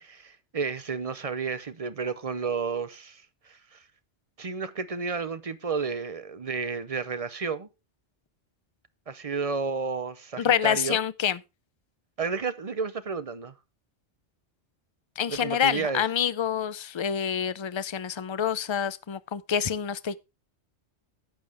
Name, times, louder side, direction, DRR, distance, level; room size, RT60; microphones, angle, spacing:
voice 1, 0.0-3.8 4.4-7.7 9.1-11.0 12.2-13.5 15.3-16.0, right 5 dB, 40° right, 0.7 m, -32 dB
voice 2, 10.4-11.4 15.2-20.2, left 8 dB, 45° left, 0.4 m, -27 dB
12.0 x 8.6 x 3.4 m
omnidirectional pair, 1.2 m